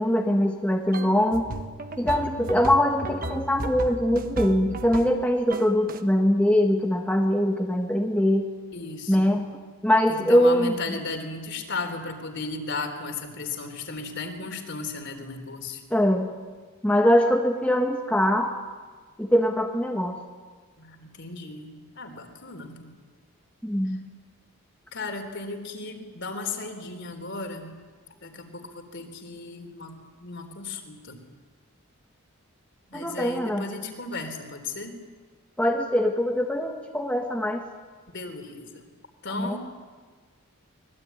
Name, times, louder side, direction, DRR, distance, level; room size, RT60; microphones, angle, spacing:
voice 1, 0.0-1.5 2.0-8.5 9.1-9.5 9.8-10.7 15.9-16.3 16.8-18.5 19.2-20.1 23.6-24.0 32.9-33.6 35.6-37.6 39.3-39.6, equal, 5° left, 1 dB, 1.4 m, -22 dB
sound 1, 0.9-5.2 5.5-6.0, right 1 dB, 40° right, 1.4 m, -34 dB
voice 2, 8.7-9.3 10.1-15.8 20.8-22.9 23.9-24.0 24.9-27.7 28.2-31.2 32.9-35.0 38.1-38.9 39.2-39.6, left 3 dB, 55° left, 6 dB, 3.7 m, -35 dB
25.5 x 20.5 x 9.5 m, 1.4 s
head